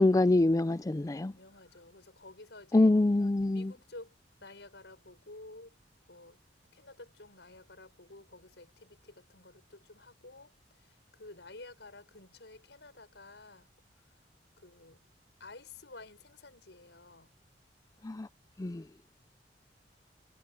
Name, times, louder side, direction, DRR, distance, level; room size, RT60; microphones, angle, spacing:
voice 1, 0.0-1.3 2.7-3.7 18.0-18.3 18.6-18.8, left 2 dB, 20° left, 0.4 m, -25 dB
voice 2, 1.2-2.9 3.5-5.7 6.1-6.4 6.7-13.7 13.9-14.1 14.6-15.0 15.4-17.3, left 2 dB, 80° left, 6.3 m, -52 dB
head